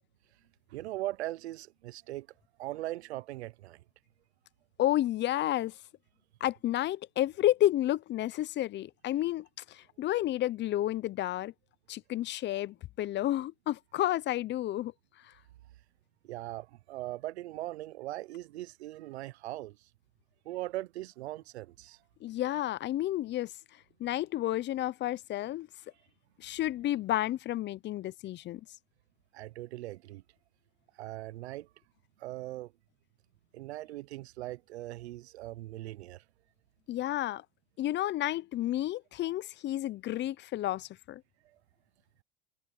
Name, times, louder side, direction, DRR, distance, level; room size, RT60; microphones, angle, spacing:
voice 1, 0.7-2.3 2.6-3.8 16.2-19.9 20.4-22.0 29.3-30.2 30.9-31.7 32.2-32.7 33.5-36.2 41.4-41.6, right 16 dB, 90° right, 0.7 m, -40 dB
voice 2, 4.8-5.8 6.4-11.5 11.9-14.9 15.2-15.3 22.2-23.5 24.0-25.7 26.4-28.6 36.9-37.4 37.8-41.2, left 13 dB, 35° left, 0.7 m, -31 dB
supercardioid pair, 110°, 32 cm